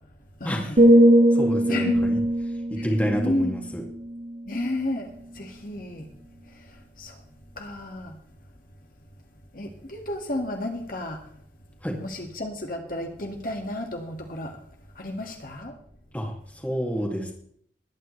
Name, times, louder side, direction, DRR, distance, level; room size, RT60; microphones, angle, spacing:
voice 1, 0.4-0.8 1.7-2.1 2.8-3.6 4.4-6.1 6.5-7.2 7.6-8.2 9.5-11.3 12.0-14.6 15.0-15.8, left 1 dB, 50° left, 2 dB, 1.8 m, -32 dB
sound 1, 0.8-4.7 5.1-5.4, right 1 dB, 45° right, 2.0 m, -21 dB
voice 2, 1.3-2.2 2.7-3.8 11.8-12.0 16.1-17.3, equal, 10° left, 0 dB, 2.2 m, -29 dB
21.0 x 9.2 x 3.2 m, 0.64 s
head